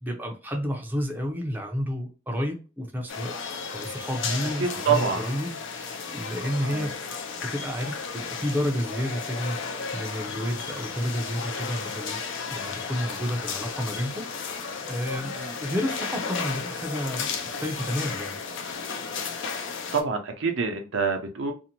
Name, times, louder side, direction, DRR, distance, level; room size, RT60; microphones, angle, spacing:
voice 1, 0.0-3.3 3.7-6.9 7.5-9.6 9.9-12.2 12.5-14.2 14.9-15.3 15.6-17.3 17.6-18.4, equal, 10° right, 0.5 m, -30 dB
sound 1, 3.1-20.0, left 5 dB, 65° left, 0.5 m, -34 dB
voice 2, 4.6-5.2 6.6-6.9 15.3-15.5 19.4-19.6 19.9-21.5, right 6 dB, 70° right, 0.6 m, -26 dB
2.6 x 2.1 x 2.8 m
head